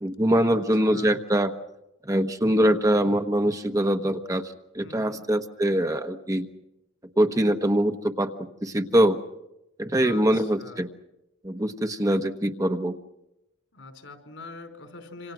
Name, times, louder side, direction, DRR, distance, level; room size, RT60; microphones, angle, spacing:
voice 1, 0.0-1.5 2.0-6.5 7.2-9.2 9.8-10.9 11.4-12.9, right 1 dB, 20° right, 6 dB, 1.1 m, -23 dB
voice 2, 4.8-5.2 10.0-10.8 13.7-15.3, left 3 dB, 75° left, 6 dB, 4.9 m, -43 dB
27.0 x 26.5 x 6.1 m, 0.89 s
head